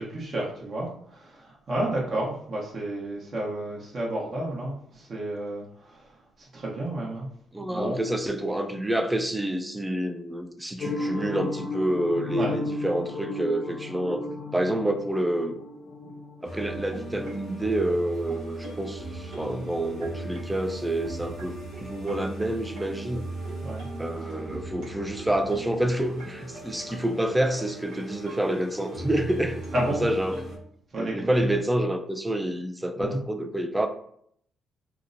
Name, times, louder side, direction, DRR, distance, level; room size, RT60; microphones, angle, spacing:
voice 1, 0.0-6.1 6.4-7.3 7.6-8.0 12.4-12.5 23.6-23.9 29.7-30.0 30.9-31.4 33.0-33.2, right 1 dB, 50° right, -3 dB, 0.8 m, -31 dB
voice 2, 7.5-15.6 16.4-23.2 24.0-30.4 31.0-33.9, right 1 dB, 10° right, 6 dB, 0.3 m, -28 dB
sound 1, 10.8-17.0, left 2 dB, 70° left, 0.6 m, -34 dB
sound 2, 16.4-30.6, right 2 dB, 85° right, 0.9 m, -38 dB
2.8 x 2.0 x 2.5 m, 0.67 s
cardioid pair, 90°, 0 cm